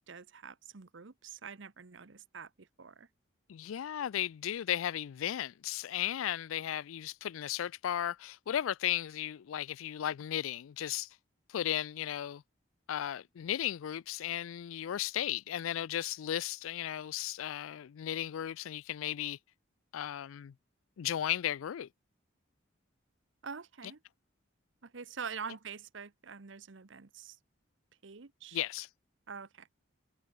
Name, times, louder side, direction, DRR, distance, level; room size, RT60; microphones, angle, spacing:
voice 1, 0.0-3.1 23.4-24.0 24.8-27.4 28.0-28.6 29.3-29.7, right 6 dB, 70° right, 0.9 m, -45 dB
voice 2, 3.5-11.2 11.5-12.4 12.9-19.4 19.9-20.5 21.0-21.9 28.5-28.9, left 11 dB, 85° left, 0.4 m, -35 dB
head